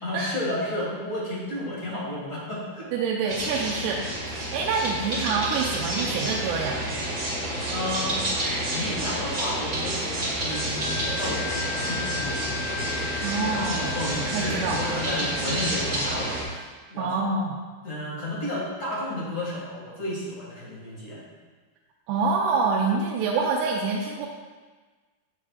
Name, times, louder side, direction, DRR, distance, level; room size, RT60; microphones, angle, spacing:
voice 1, 0.0-2.9 7.3-7.4 7.7-8.2 8.7-17.2 17.8-21.2, left 1 dB, 40° left, -6 dB, 1.1 m, -32 dB
voice 2, 2.9-6.8 13.2-13.9 14.2-14.8 17.0-17.6 22.1-24.3, right 4 dB, 90° right, -2 dB, 2.7 m, -26 dB
sound 1, 3.3-16.4, right 1 dB, 45° right, 1.2 m, -29 dB
Wind instrument woodwind instrument, 10.5-16.6, left 6 dB, 85° left, 1.7 m, -37 dB
11.0 x 7.3 x 2.4 m, 1.4 s
omnidirectional pair, 4.6 m